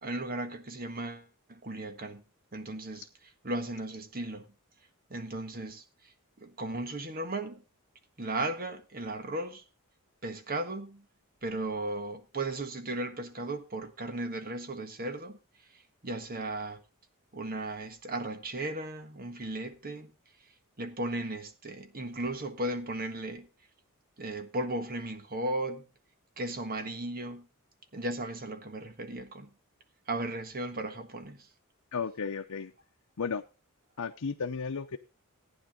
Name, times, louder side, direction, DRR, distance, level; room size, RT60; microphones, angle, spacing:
voice 1, 0.0-2.2 2.5-3.1 3.4-4.4 5.1-5.8 6.4-7.6 8.2-9.6 10.2-11.0 11.4-15.4 15.7-16.8 17.3-20.1 20.8-23.5 24.2-25.8 26.4-27.5 27.9-29.5 30.1-31.5, right 2 dB, 45° right, 1.5 m, -36 dB
voice 2, 31.9-32.7 33.2-33.4 34.0-35.0, left 5 dB, 90° left, 0.7 m, -34 dB
15.0 x 9.6 x 3.8 m
head